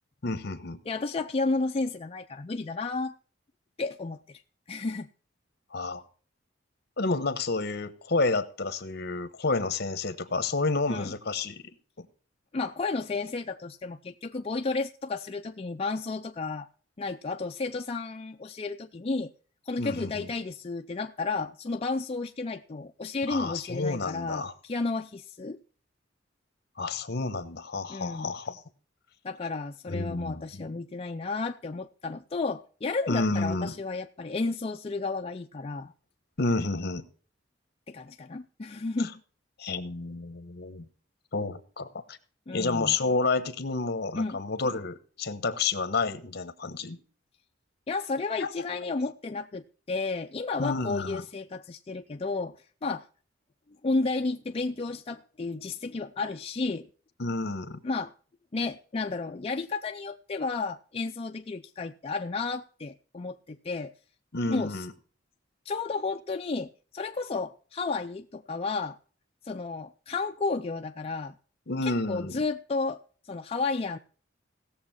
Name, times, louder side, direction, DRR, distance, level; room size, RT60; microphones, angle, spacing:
voice 1, 0.2-0.8 5.7-6.0 7.0-11.6 12.0-12.1 19.8-20.3 23.3-24.5 26.8-28.6 29.9-30.7 33.1-33.7 36.4-37.0 39.6-40.9 41.3-42.2 42.5-47.0 48.4-48.5 50.6-51.2 57.2-57.8 64.3-64.9 71.7-72.4, left 3 dB, 60° left, 1.2 m, -30 dB
voice 2, 0.9-3.2 3.8-4.4 4.7-5.1 10.9-11.1 12.5-16.7 17.0-19.3 19.7-25.6 27.9-28.3 29.2-35.9 37.9-39.1 42.5-43.0 44.2-44.4 47.9-53.1 53.8-56.9 57.8-58.1 58.5-63.9 64.5-64.9 65.7-69.0 69.4-71.4 71.8-74.0, left 3 dB, 30° left, 0.4 m, -32 dB
17.0 x 7.1 x 4.3 m
head